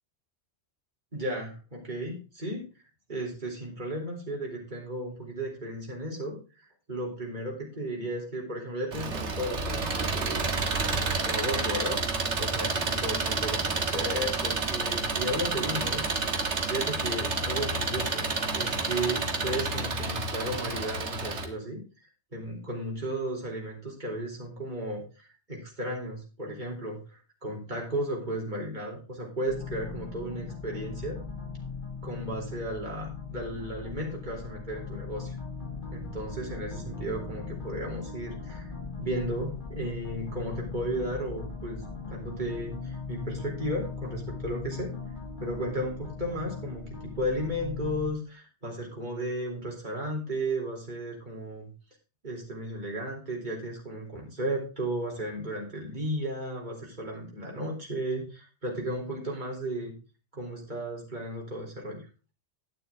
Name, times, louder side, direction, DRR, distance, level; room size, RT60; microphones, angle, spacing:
voice 1, 1.1-2.7 3.1-10.5 11.1-16.4 16.7-21.8 22.3-31.2 32.0-35.4 35.9-38.7 39.0-41.8 42.1-44.9 45.4-51.7 52.2-59.9 60.3-62.0, right 1 dB, 40° right, -1 dB, 3.8 m, -34 dB
Engine, 8.9-21.4, right 3 dB, 85° right, 1.9 m, -29 dB
sound 1, 29.5-48.1, left 4 dB, 45° left, 2.1 m, -39 dB
11.0 x 9.5 x 3.7 m, 0.33 s
omnidirectional pair, 1.2 m